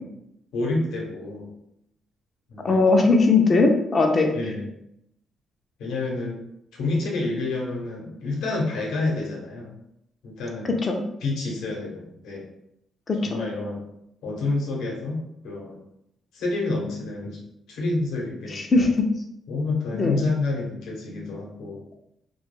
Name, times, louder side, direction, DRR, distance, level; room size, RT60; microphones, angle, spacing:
voice 1, 0.5-1.5 2.5-3.1 4.3-4.6 5.8-6.4 6.7-9.7 10.2-10.8 11.2-12.4 13.2-13.9 14.2-15.8 16.3-17.4 17.7-18.9 19.5-21.8, left 2 dB, 85° left, -2 dB, 0.8 m, -28 dB
voice 2, 2.6-4.3 10.6-11.0 13.1-13.2 18.5-19.1 19.9-20.2, left 3 dB, 35° left, 2 dB, 0.3 m, -19 dB
2.2 x 2.2 x 3.1 m, 0.79 s
cardioid pair, 90°, 0 cm